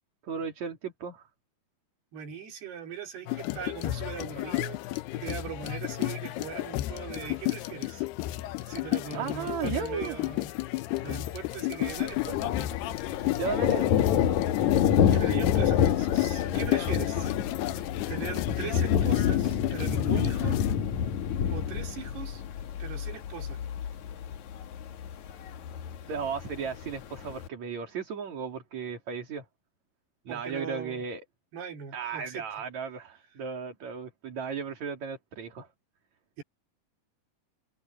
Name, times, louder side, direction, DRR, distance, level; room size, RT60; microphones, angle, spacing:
voice 1, 0.2-1.3 9.1-10.2 13.3-13.9 26.1-29.5 30.3-31.2 31.9-35.7, right 6 dB, 45° right, 4.0 m, -35 dB
voice 2, 2.1-8.0 8.6-10.6 11.0-12.7 13.2-13.4 15.1-17.4 17.7-20.6 21.5-22.4 22.8-23.6 30.3-31.0 31.5-32.4 36.4-36.5, right 7 dB, 75° right, 5.5 m, -40 dB
sound 1, 3.3-20.8, left 17 dB, 80° left, 2.9 m, -33 dB
Thunder, 11.9-27.5, left 9 dB, 60° left, 2.2 m, -28 dB
omnidirectional pair, 4.7 m